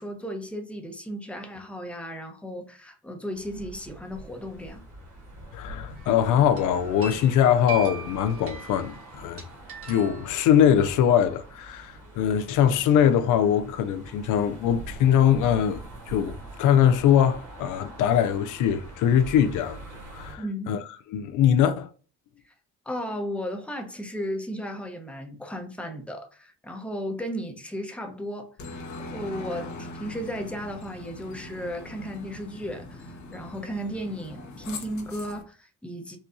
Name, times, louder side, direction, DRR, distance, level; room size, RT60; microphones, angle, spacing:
voice 1, 0.0-4.9 20.4-20.7 22.9-28.8 29.1-36.2, equal, 5° left, 0.7 m, -35 dB
sound 1, 3.3-20.4, right 2 dB, 75° right, 1.5 m, -44 dB
voice 2, 5.5-9.4 9.9-19.8 20.1-20.8 21.1-21.9, left 9 dB, 85° left, 0.5 m, -22 dB
sound 2, 6.0-6.3 6.6-11.0, right 4 dB, 50° right, 1.3 m, -41 dB
Aircraft, 28.6-35.4, left 2 dB, 70° left, 0.9 m, -41 dB
4.2 x 2.3 x 2.5 m
cardioid pair, 90°, 30 cm